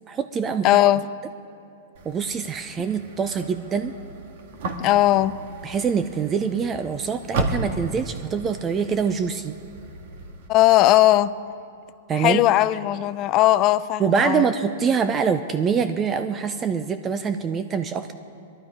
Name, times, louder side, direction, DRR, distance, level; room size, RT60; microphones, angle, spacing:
voice 1, 0.1-0.7 2.0-3.9 5.6-9.5 12.1-12.4 14.0-18.1, right 6 dB, 20° right, 0.5 m, -24 dB
voice 2, 0.6-1.1 4.8-5.4 10.5-11.3 12.2-14.5, left 15 dB, 35° left, 0.4 m, -18 dB
sound 1, 1.9-10.5, right 2 dB, 60° right, 1.6 m, -34 dB
20.5 x 12.0 x 4.9 m
hypercardioid pair, 135°, 0 cm